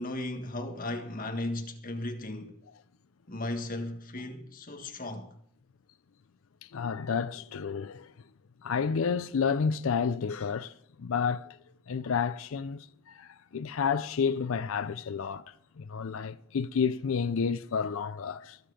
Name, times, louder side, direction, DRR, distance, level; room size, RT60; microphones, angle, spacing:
voice 1, 0.0-2.6 3.3-5.4, left 1 dB, 40° left, 1.7 m, -36 dB
voice 2, 6.6-8.1 8.6-11.6 11.9-18.6, left 6 dB, 65° left, 0.5 m, -30 dB
22.5 x 7.7 x 5.0 m
head